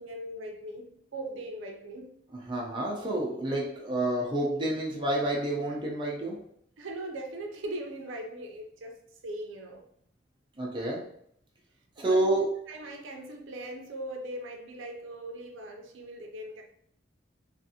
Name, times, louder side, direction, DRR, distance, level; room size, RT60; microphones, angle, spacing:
voice 1, 0.0-2.1 6.8-9.9 12.0-12.4 12.7-16.6, right 1 dB, 80° right, 0.5 m, -40 dB
voice 2, 2.5-6.4 10.6-11.1 12.0-12.5, right 1 dB, 25° right, 0.5 m, -29 dB
2.5 x 2.5 x 2.7 m
head